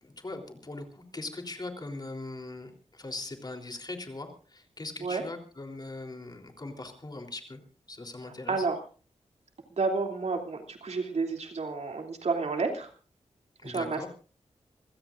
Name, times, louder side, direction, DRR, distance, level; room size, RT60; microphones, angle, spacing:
voice 1, 0.0-7.6 7.9-8.7 13.6-14.1, left 2 dB, 35° left, 4 dB, 3.6 m, -40 dB
voice 2, 9.7-12.9 13.6-14.1, right 4 dB, 65° right, 3 dB, 3.0 m, -30 dB
27.0 x 16.0 x 2.6 m, 0.38 s
wide cardioid pair, 80°, 12 cm